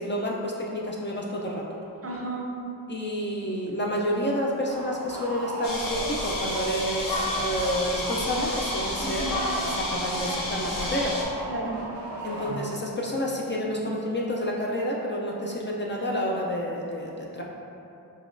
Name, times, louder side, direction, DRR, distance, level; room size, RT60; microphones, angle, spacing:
voice 1, 0.0-1.7 2.9-9.3 9.6-11.2 12.2-17.4, equal, 30° left, -3 dB, 0.4 m, -29 dB
voice 2, 2.0-2.5 9.0-9.4 11.5-11.8, right 2 dB, 35° right, -2 dB, 0.5 m, -33 dB
sound 1, 4.7-13.0, right 1 dB, 85° right, 0.6 m, -36 dB
sound 2, 5.6-11.2, left 1 dB, 55° left, 0.8 m, -31 dB
4.0 x 3.0 x 2.5 m, 2.8 s
cardioid pair, 65°, 40 cm